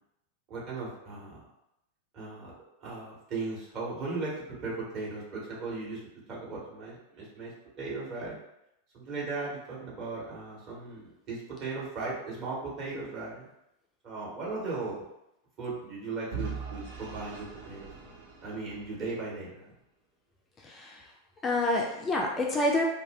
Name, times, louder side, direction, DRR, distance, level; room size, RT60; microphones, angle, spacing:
voice 1, 0.5-1.4 2.1-2.5 2.8-4.3 4.6-7.5 7.8-8.3 8.9-13.5 14.0-15.0 15.6-19.7, right 3 dB, 35° right, -6 dB, 1.2 m, -37 dB
Vehicle / Engine, 16.3-19.3, right 5 dB, 55° right, 0.7 m, -41 dB
voice 2, 20.6-21.0 21.4-22.8, left 2 dB, 20° left, 0 dB, 0.4 m, -28 dB
2.4 x 2.2 x 3.4 m, 0.84 s
figure-of-eight pair, 90°, 0 cm